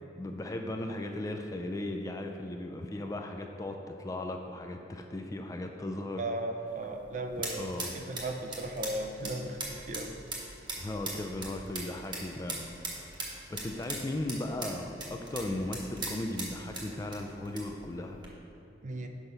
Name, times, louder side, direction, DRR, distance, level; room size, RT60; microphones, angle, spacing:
voice 1, 0.2-6.2 7.6-8.0 10.8-12.7 13.3-18.2, left 1 dB, 20° left, 4 dB, 0.4 m, -37 dB
voice 2, 6.2-10.2 18.8-19.1, right 1 dB, 40° right, 4 dB, 0.5 m, -36 dB
sound 1, 6.7-18.3, right 2 dB, 25° right, 1.0 m, -41 dB
6.1 x 5.0 x 5.4 m, 2.9 s
head